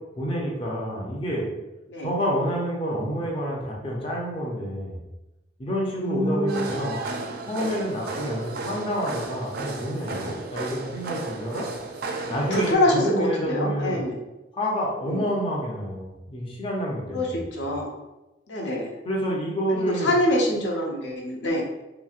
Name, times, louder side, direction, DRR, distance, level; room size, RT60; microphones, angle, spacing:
voice 1, 0.2-1.5 2.0-5.0 5.6-7.0 7.5-11.7 12.3-14.0 14.5-17.4 19.0-20.1 21.5-21.6, equal, 30° left, -3 dB, 0.5 m, -28 dB
voice 2, 6.0-6.6 12.5-14.2 15.1-15.2 17.1-17.3 17.5-17.9 18.5-18.9 19.7-21.6, left 1 dB, 85° left, -2 dB, 0.6 m, -25 dB
sound 1, 6.5-12.7, right 3 dB, 55° right, 0.4 m, -34 dB
3.0 x 2.6 x 2.4 m, 1.0 s
head